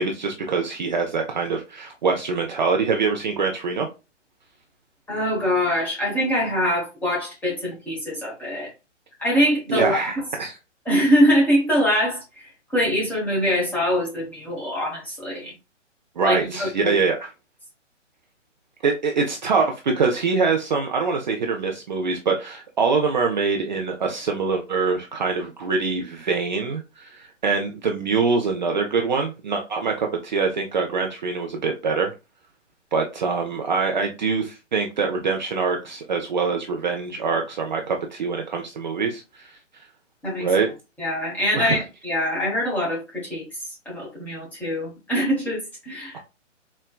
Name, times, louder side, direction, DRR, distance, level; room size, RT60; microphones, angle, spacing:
voice 1, 0.0-3.9 9.7-10.6 16.2-17.3 18.8-32.1 32.9-39.5 40.4-40.7 41.5-41.8, right 4 dB, 40° right, 0.4 m, -24 dB
voice 2, 5.1-8.7 9.2-10.0 10.4-10.5 10.8-15.5 16.2-17.0 40.2-40.5 41.0-43.4 43.9-46.2, equal, 5° left, 0.9 m, -23 dB
4.4 x 2.1 x 2.2 m
figure-of-eight pair, 135°, 37 cm